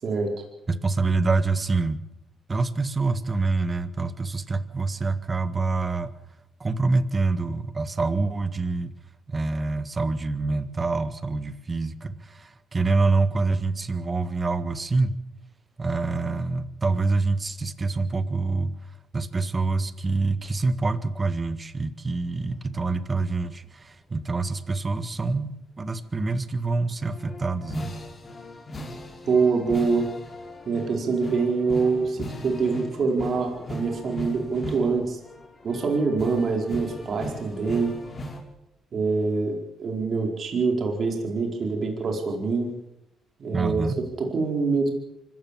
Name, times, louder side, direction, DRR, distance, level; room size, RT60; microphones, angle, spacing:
voice 1, 0.7-2.0 2.5-6.1 6.6-8.9 9.3-15.2 15.8-18.7 19.1-25.5 25.8-27.9 43.5-44.0, right 3 dB, 30° right, 12 dB, 1.6 m, -26 dB
sound 1, 27.0-38.4, left 1 dB, 35° left, 6.1 m, -38 dB
voice 2, 29.3-30.1 30.7-35.2 35.6-38.0 38.9-42.7 43.4-44.9, right 4 dB, 55° right, 2 dB, 4.7 m, -25 dB
25.0 x 15.5 x 7.5 m, 0.84 s
cardioid pair, 90°, 0 cm